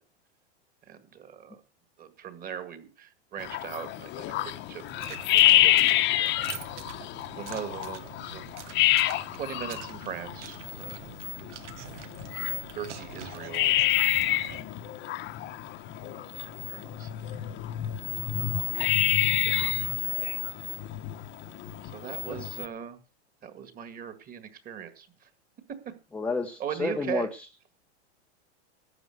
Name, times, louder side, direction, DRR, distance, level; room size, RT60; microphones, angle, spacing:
voice 1, 0.9-1.6 2.0-4.8 5.1-6.7 7.4-8.6 9.4-11.4 12.7-13.7 14.4-14.6 16.1-17.4 19.3-20.3 21.9-23.0 23.4-25.3 25.7-25.9 26.6-27.3, right 9 dB, 25° right, 10 dB, 2.0 m, -40 dB
sound 1, 3.4-22.7, left 14 dB, 30° left, 0.9 m, -28 dB
sound 2, 4.9-14.6, right 9 dB, 85° right, 1.4 m, -45 dB
voice 2, 26.1-27.5, left 3 dB, 5° left, 3 dB, 0.7 m, -31 dB
12.0 x 7.6 x 7.7 m, 0.35 s
supercardioid pair, 140°, 35 cm